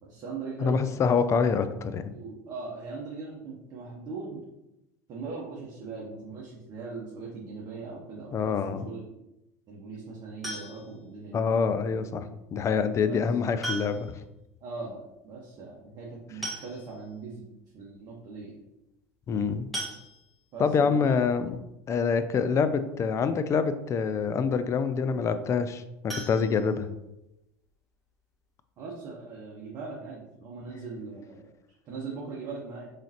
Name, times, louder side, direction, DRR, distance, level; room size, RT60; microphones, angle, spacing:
voice 1, 0.0-0.8 2.1-4.4 5.1-9.0 9.7-11.4 13.0-13.2 14.6-17.5 17.7-18.6 20.5-21.2 28.8-31.5 31.9-32.9, right 4 dB, 45° right, -4 dB, 0.9 m, -40 dB
voice 2, 0.6-2.2 8.3-8.9 11.3-14.1 19.3-19.7 20.6-21.5 21.9-26.9, left 5 dB, 30° left, 11 dB, 0.3 m, -26 dB
sound 1, 10.4-11.1 12.5-12.6 13.6-14.2 14.5-14.6 14.9-15.0 16.0-16.1 16.4-17.1 17.7-17.8 18.1-18.3 19.7-20.6 26.0-27.3 27.6-27.7 28.2-28.3 28.6-28.7, right 1 dB, ahead, 1.4 m, -38 dB
3.7 x 3.2 x 2.8 m, 0.91 s
hypercardioid pair, 80°, 10 cm